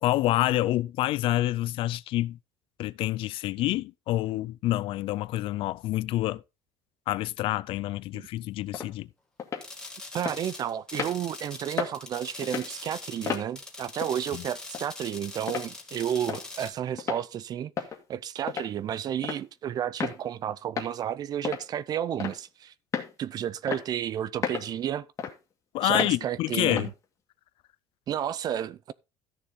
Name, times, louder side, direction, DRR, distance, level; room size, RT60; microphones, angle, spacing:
voice 1, 0.0-2.4 2.8-6.4 7.1-9.1 14.3-14.4 25.7-26.9, left 15 dB, 55° left, 0.5 m, -27 dB
sound 1, 8.7-8.9 9.4-9.7 10.3-10.4 10.9-11.2 11.8-12.0 12.4-12.7 13.3-13.5 14.0-14.2 14.7-14.8 15.5-15.7 16.3-16.4 17.0-17.2 17.8-18.0 18.5-18.7 19.2-19.4 20.0-20.2 20.8-20.9 21.4-21.7 22.2-22.5 22.9-23.1 23.7-23.8 24.4-24.7 25.2-25.3 25.9-26.1 26.7-26.9, left 7 dB, 30° left, 2.0 m, -32 dB
sound 2, 9.6-16.7, left 2 dB, 5° left, 2.0 m, -42 dB
voice 2, 10.1-17.7 18.1-22.7 23.2-25.1 25.8-26.9 28.1-28.9, right 10 dB, 40° right, 0.5 m, -32 dB
13.5 x 6.8 x 3.7 m
cardioid pair, 150°, 11 cm